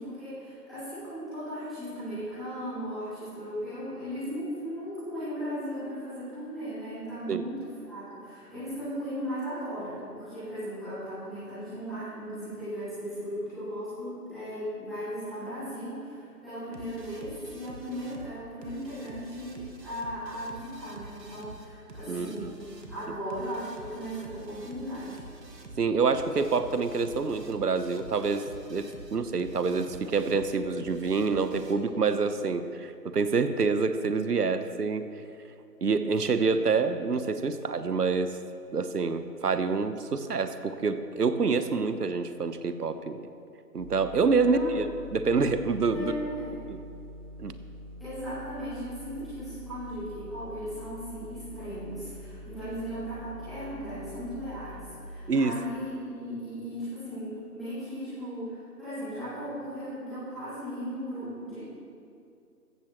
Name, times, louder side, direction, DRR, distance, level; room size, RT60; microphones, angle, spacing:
voice 1, 0.0-22.5 22.9-25.2 44.4-44.7 45.9-46.6 48.0-61.6, equal, ahead, -20 dB, 2.6 m, -37 dB
sound 1, 16.7-31.7, right 2 dB, 90° right, 1.8 m, -47 dB
voice 2, 22.1-22.5 25.8-35.1 35.8-38.4 38.7-43.3 43.7-46.1 46.7-46.8 47.4-47.6 55.3-55.5, right 4 dB, 70° right, 11 dB, 1.1 m, -27 dB
sound 2, 43.8-54.9, equal, 45° right, 2.5 m, -45 dB
15.5 x 14.5 x 3.0 m, 2.5 s
figure-of-eight pair, 170°, 48 cm